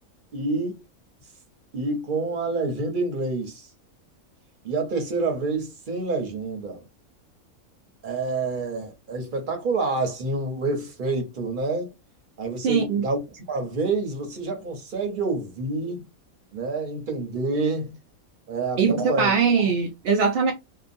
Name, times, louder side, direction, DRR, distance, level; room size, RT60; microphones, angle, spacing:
voice 1, 0.3-0.8 1.7-3.7 4.6-6.8 8.0-11.9 12.4-16.0 16.5-17.9 18.5-19.3, right 3 dB, 45° right, 0.8 m, -28 dB
voice 2, 12.6-13.0 18.8-20.5, right 5 dB, 70° right, 0.5 m, -21 dB
2.8 x 2.3 x 2.6 m
omnidirectional pair, 1.5 m